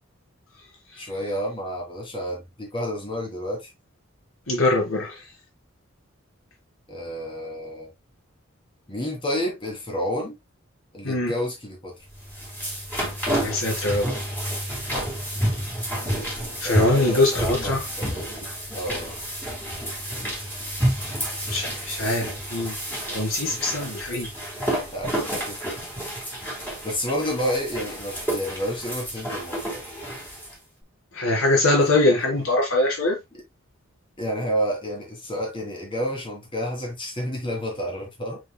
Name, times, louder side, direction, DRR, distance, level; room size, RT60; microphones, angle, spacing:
voice 1, 1.0-3.7 6.9-7.9 8.9-10.4 10.9-11.9 16.6-18.2 18.7-19.2 23.5-23.6 24.9-25.6 26.8-29.8 33.3-33.4 34.2-38.4, equal, 25° left, 3.1 m, -30 dB
voice 2, 4.5-5.1 11.0-11.3 13.4-14.1 16.6-17.8 21.5-22.7 23.1-24.3 31.1-33.2, left 2 dB, 85° left, 3.6 m, -22 dB
sound 1, 12.1-30.5, equal, 10° left, 3.9 m, -30 dB
6.9 x 6.3 x 2.2 m
head